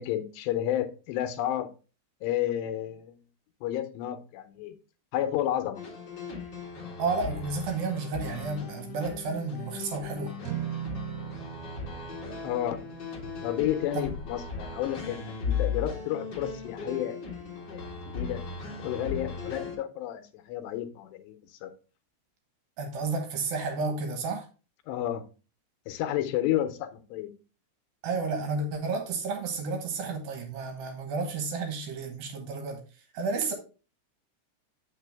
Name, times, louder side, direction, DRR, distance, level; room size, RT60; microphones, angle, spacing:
voice 1, 0.0-1.7 2.2-3.2 3.6-4.7 5.1-5.8 12.4-12.8 13.4-18.4 18.8-21.7 24.9-25.2 25.9-27.3, left 12 dB, 85° left, 3.0 m, -31 dB
sound 1, 5.7-19.8, left 5 dB, 60° left, 1.1 m, -37 dB
voice 2, 7.0-10.4 13.9-14.2 22.8-24.5 28.0-33.5, right 4 dB, 70° right, 2.6 m, -32 dB
sound 2, 10.4-16.9, right 11 dB, 85° right, 2.7 m, -42 dB
7.5 x 5.9 x 3.4 m
omnidirectional pair, 4.8 m